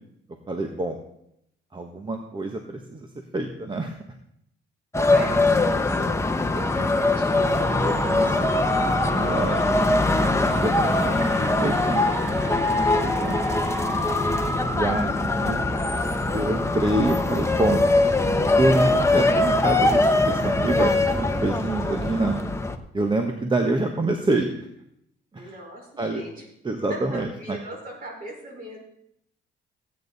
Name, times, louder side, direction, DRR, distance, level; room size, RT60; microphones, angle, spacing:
voice 1, 0.5-1.0 1.7-3.1 3.3-4.0 7.6-8.5 8.8-9.6 10.1-12.2 12.8-13.5 14.5-15.7 16.3-17.9 18.6-22.4 22.9-24.5 25.3-25.5 26.0-26.2 26.6-27.6, right 2 dB, 25° right, 4 dB, 1.2 m, -27 dB
sound 1, 4.9-22.8, left 2 dB, 15° left, 1.0 m, -22 dB
voice 2, 5.1-6.2 6.5-7.5 14.3-14.6 25.3-26.5 26.9-28.8, right 1 dB, 45° right, -1 dB, 5.0 m, -39 dB
sound 2, 7.3-14.6, right 3 dB, 90° right, 1.7 m, -36 dB
15.5 x 8.8 x 4.1 m, 0.75 s
cardioid pair, 90°, 20 cm